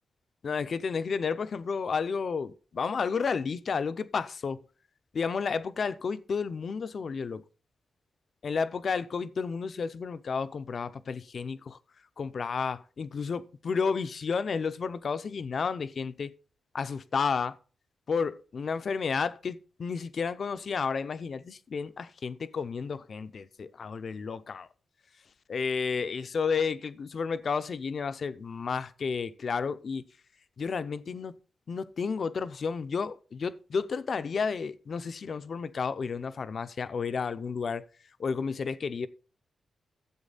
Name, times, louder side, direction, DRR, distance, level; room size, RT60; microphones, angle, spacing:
voice 1, 0.4-4.6 5.1-7.4 8.4-11.8 12.2-16.3 16.7-17.6 18.1-24.7 25.5-30.0 30.6-31.4 31.7-37.8 38.2-39.1, left 5 dB, 45° left, 0.6 m, -31 dB
13.0 x 8.0 x 4.0 m
wide cardioid pair, 175°, 0 cm